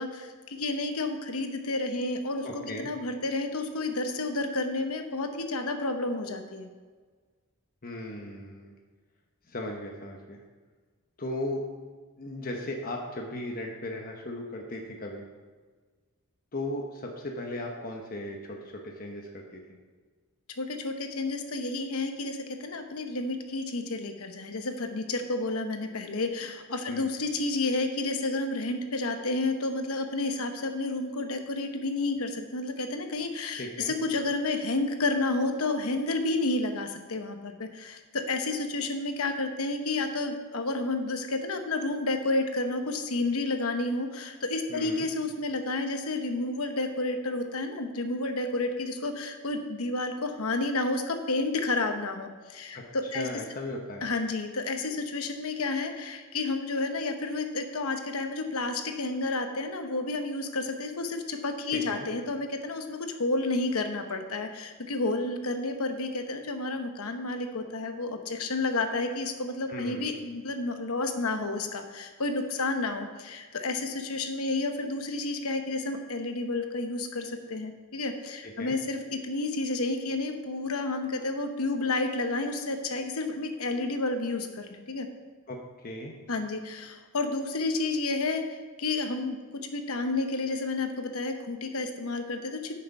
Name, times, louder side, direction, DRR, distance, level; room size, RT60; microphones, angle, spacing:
voice 1, 0.0-6.7 20.6-53.3 54.0-85.1 86.3-92.8, left 2 dB, 75° left, 6 dB, 1.0 m, -31 dB
voice 2, 2.4-2.9 7.8-8.7 9.5-10.4 11.2-11.6 12.2-15.2 16.5-19.8 26.9-27.1 33.6-33.9 44.7-45.1 52.7-52.8 53.1-54.1 61.7-62.1 69.7-70.0 78.4-78.7 85.5-85.6 85.8-86.1, left 1 dB, 40° left, 0 dB, 1.0 m, -37 dB
9.2 x 6.6 x 5.4 m, 1.4 s
head